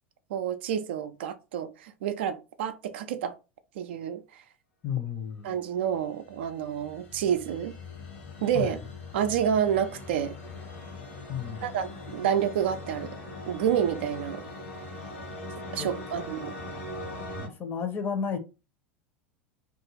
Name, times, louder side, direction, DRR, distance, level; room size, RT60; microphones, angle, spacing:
voice 1, 0.3-3.3 3.8-4.2 5.4-7.7 8.4-8.8 9.1-10.3 11.6-13.2 13.5-14.4 15.7-16.5, right 9 dB, 65° right, 0.3 m, -29 dB
voice 2, 4.8-5.5 8.5-8.9 11.3-11.7 15.8-15.9 17.3-18.4, left 7 dB, 30° left, 0.6 m, -32 dB
sound 1, 5.9-17.5, left 2 dB, 65° left, 1.1 m, -41 dB
2.4 x 2.3 x 3.0 m
figure-of-eight pair, 80°, 7 cm